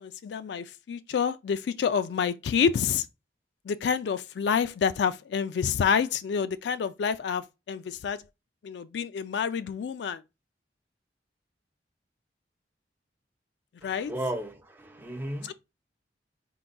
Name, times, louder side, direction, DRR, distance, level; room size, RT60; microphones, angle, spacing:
voice 1, 0.0-3.1 3.7-8.2 8.6-10.2 13.8-14.1 15.5-15.6, left 6 dB, 70° left, 0.3 m, -28 dB
voice 2, 13.8-15.5, right 1 dB, 10° right, 0.7 m, -35 dB
4.6 x 3.8 x 2.2 m
head